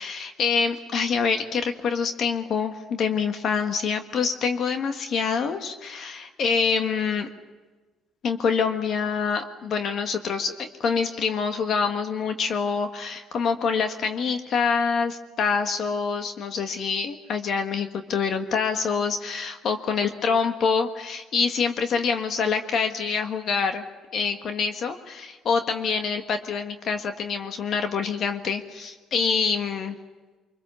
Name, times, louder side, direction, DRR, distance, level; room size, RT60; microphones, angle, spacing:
voice 1, 0.0-7.3 8.2-23.8 24.1-30.0, left 5 dB, 60° left, 6 dB, 1.5 m, -26 dB
24.5 x 24.5 x 6.9 m, 1.3 s
cardioid pair, 100°, 0 cm